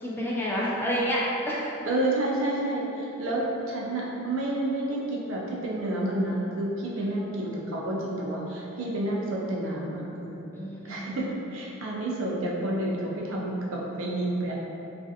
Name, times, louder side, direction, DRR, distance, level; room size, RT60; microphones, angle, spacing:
voice 1, 0.0-1.7 7.0-7.2 10.5-11.0, equal, 10° left, -6 dB, 0.3 m, -29 dB
voice 2, 1.8-10.5 10.8-14.5, right 1 dB, 75° right, -3 dB, 0.5 m, -30 dB
3.2 x 2.5 x 2.6 m, 2.9 s
head